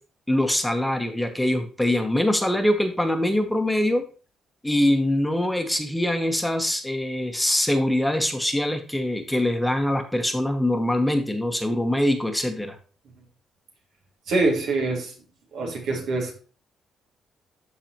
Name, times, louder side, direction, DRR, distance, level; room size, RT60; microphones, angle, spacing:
voice 1, 0.3-4.0 4.6-12.7, left 1 dB, 5° left, 1.0 m, -23 dB
voice 2, 14.3-15.1 15.5-16.3, right 3 dB, 75° right, 2.2 m, -24 dB
12.5 x 4.1 x 3.0 m
cardioid pair, 90°, 0 cm